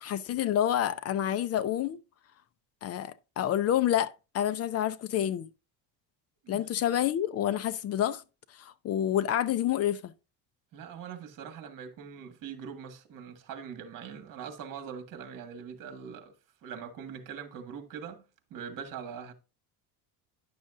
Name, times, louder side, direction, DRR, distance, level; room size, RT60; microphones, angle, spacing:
voice 1, 0.0-2.0 2.8-5.5 6.5-8.2 8.5-10.1, left 11 dB, 40° left, 0.4 m, -28 dB
voice 2, 10.7-16.3 16.6-18.2 18.5-19.3, right 7 dB, 50° right, 1.7 m, -42 dB
10.5 x 6.4 x 2.5 m
cardioid pair, 150°, 40 cm